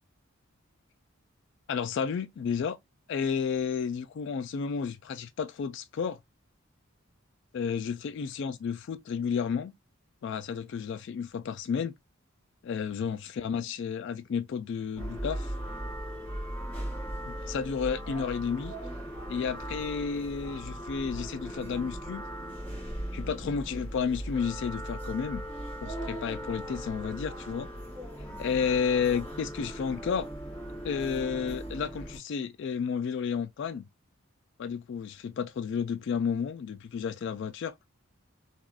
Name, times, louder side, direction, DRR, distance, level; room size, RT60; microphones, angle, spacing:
voice 1, 1.7-2.8 3.1-6.2 7.5-9.7 10.2-11.9 12.6-15.5 17.3-18.7 19.3-22.2 23.1-25.4 25.8-27.7 28.4-30.3 30.8-33.9 34.6-37.7, left 6 dB, 60° left, 0.3 m, -32 dB
sound 1, 15.0-32.2, right 1 dB, 5° left, 1.6 m, -38 dB
3.4 x 2.3 x 2.3 m
head